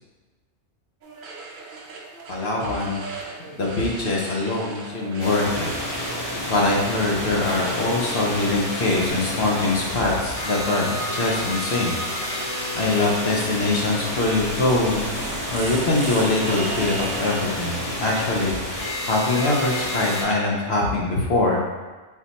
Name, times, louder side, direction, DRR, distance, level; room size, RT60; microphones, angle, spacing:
sound 1, 1.0-9.1, right 3 dB, 55° right, 0.6 m, -39 dB
voice 1, 2.3-3.1 3.5-5.7 6.5-12.4 12.7-15.1 15.5-21.7, left 2 dB, 60° left, -3 dB, 0.9 m, -23 dB
sound 2, 5.2-20.2, left 1 dB, 85° left, 1.6 m, -30 dB
sound 3, 13.9-17.6, right 3 dB, 80° right, 1.0 m, -34 dB
4.3 x 2.4 x 4.0 m, 1.3 s
omnidirectional pair, 1.2 m